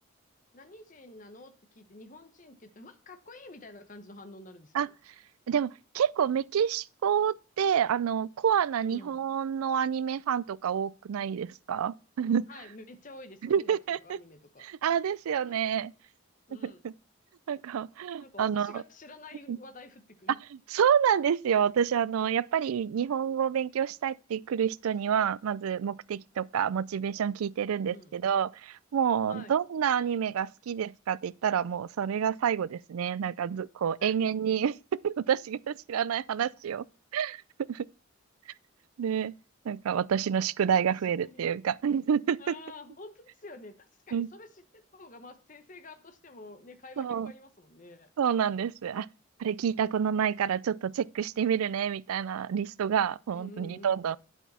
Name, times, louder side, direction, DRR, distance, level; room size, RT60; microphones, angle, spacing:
voice 1, 0.5-4.9 8.8-9.3 12.5-13.8 14.0-14.7 15.4-15.7 16.5-16.8 18.2-20.4 26.3-26.5 27.7-28.1 29.3-29.5 34.0-34.1 40.8-40.9 41.2-41.5 42.4-48.1 53.3-54.0, left 2 dB, 35° left, 1.0 m, -49 dB
voice 2, 5.5-12.5 13.4-14.2 14.6-15.9 16.6-16.9 17.5-18.8 19.5-19.6 20.7-34.8 35.0-36.8 37.1-37.4 37.7-37.9 39.0-39.3 39.7-42.5 44.1-44.3 47.0-47.3 48.2-49.1 49.4-54.2, right 8 dB, 85° right, 0.4 m, -28 dB
9.3 x 8.1 x 4.2 m
head